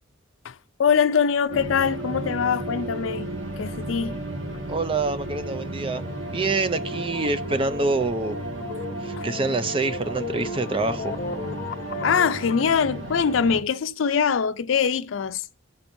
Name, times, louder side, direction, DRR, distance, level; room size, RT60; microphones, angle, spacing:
voice 1, 0.4-3.3 3.6-4.2 9.2-9.3 12.0-15.5, left 6 dB, 80° left, 0.5 m, -23 dB
sound 1, 1.5-13.6, right 1 dB, 70° right, 1.6 m, -33 dB
voice 2, 4.7-8.4 9.0-11.1, right 3 dB, 25° right, 0.4 m, -26 dB
sound 2, 5.4-12.7, left 3 dB, 45° left, 0.8 m, -36 dB
14.5 x 5.9 x 2.7 m
head